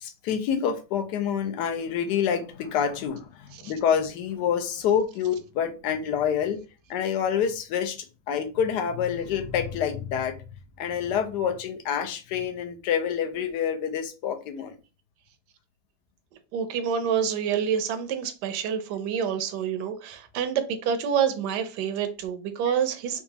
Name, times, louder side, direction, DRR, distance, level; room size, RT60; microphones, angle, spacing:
voice 1, 0.0-6.6 6.9-10.4 10.8-14.8 22.7-22.8, left 8 dB, 70° left, 1.1 m, -27 dB
voice 2, 16.5-23.2, right 7 dB, 75° right, 1.1 m, -27 dB
4.0 x 2.3 x 2.7 m
omnidirectional pair, 2.0 m